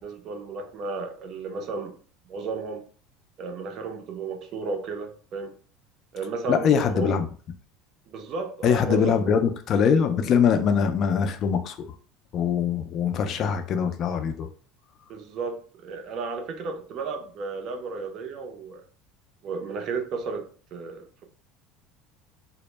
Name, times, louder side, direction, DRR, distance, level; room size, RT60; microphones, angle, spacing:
voice 1, 0.0-2.0 2.3-2.8 3.4-5.5 6.1-7.2 8.1-9.3 15.1-18.8 19.4-21.2, right 4 dB, 45° right, 0.5 m, -33 dB
voice 2, 6.5-7.3 8.6-11.9 12.3-14.5, left 7 dB, 40° left, 0.3 m, -23 dB
2.0 x 2.0 x 3.1 m
cardioid pair, 145°, 0 cm